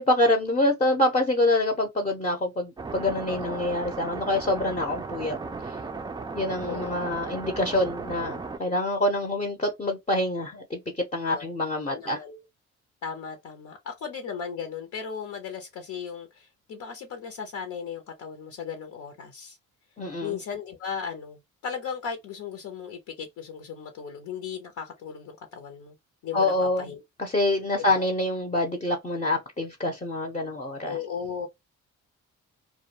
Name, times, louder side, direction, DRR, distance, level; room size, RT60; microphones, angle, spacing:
voice 1, 0.0-5.4 6.3-12.2 20.0-20.4 26.3-26.9 27.2-31.0, left 1 dB, 20° left, 0.6 m, -26 dB
sound 1, 2.8-8.6, right 4 dB, 15° right, 0.3 m, -36 dB
voice 2, 3.3-3.7 6.6-7.1 11.2-11.4 11.9-12.4 13.0-19.6 20.2-25.9 26.2-27.0 27.8-28.1 30.8-31.5, left 6 dB, 70° left, 0.7 m, -36 dB
2.2 x 2.2 x 2.8 m
cardioid pair, 90°, 30 cm